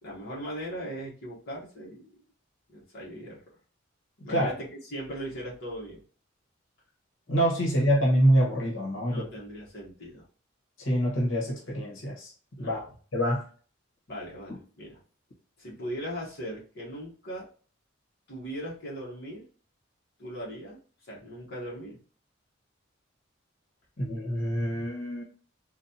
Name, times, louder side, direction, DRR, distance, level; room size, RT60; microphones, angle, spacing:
voice 1, 0.0-2.0 2.7-3.4 4.2-6.0 9.1-10.2 12.6-12.8 14.1-15.0 15.6-17.5 18.3-19.4 20.2-20.8 21.1-22.0, equal, 55° left, -5 dB, 1.3 m, -39 dB
voice 2, 7.3-9.3 10.8-12.3 12.6-12.8 13.1-13.4 24.0-25.2, equal, 75° left, -3 dB, 1.4 m, -25 dB
4.0 x 2.5 x 2.8 m, 0.40 s
head